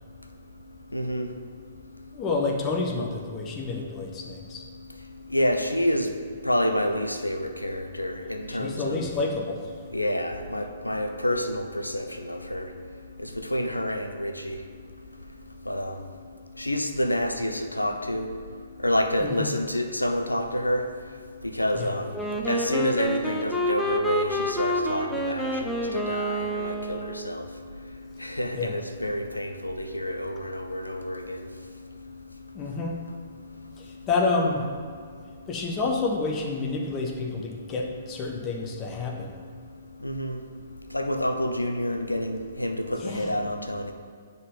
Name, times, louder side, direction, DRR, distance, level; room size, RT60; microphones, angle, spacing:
voice 1, 0.9-1.3 5.3-6.1 6.4-9.1 9.9-12.7 13.2-14.6 15.7-16.0 16.6-18.3 18.8-20.9 21.4-22.2 22.5-27.5 28.2-31.5 40.0-40.4 40.9-43.9, left 1 dB, 90° left, 6 dB, 0.6 m, -28 dB
voice 2, 2.1-4.6 8.5-9.7 19.2-19.5 21.7-21.9 28.5-28.7 32.5-33.0 33.8-34.6 35.5-39.4 43.0-43.3, left 3 dB, 20° left, 1 dB, 1.0 m, -29 dB
Wind instrument woodwind instrument, 22.1-27.3, equal, ahead, 0.6 m, -28 dB
9.7 x 3.9 x 3.9 m, 2.1 s
figure-of-eight pair, 120°, 0 cm